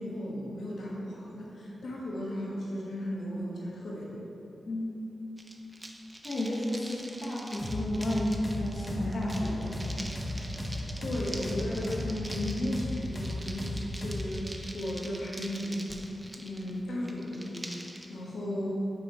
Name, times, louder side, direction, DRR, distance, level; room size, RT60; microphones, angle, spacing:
voice 1, 0.0-4.3 11.0-15.9 16.4-17.7 18.1-18.7, left 1 dB, 90° left, -5 dB, 1.1 m, -35 dB
sound 1, 5.4-18.1, right 1 dB, 20° right, 0.6 m, -45 dB
voice 2, 6.2-9.8, left 1 dB, 60° left, -5 dB, 1.1 m, -32 dB
sound 2, 7.6-14.3, left 1 dB, 20° left, 0.9 m, -35 dB
sound 3, 8.6-12.5, equal, 65° right, 1.4 m, -51 dB
5.6 x 4.9 x 4.4 m, 2.8 s
wide cardioid pair, 95°, 0 cm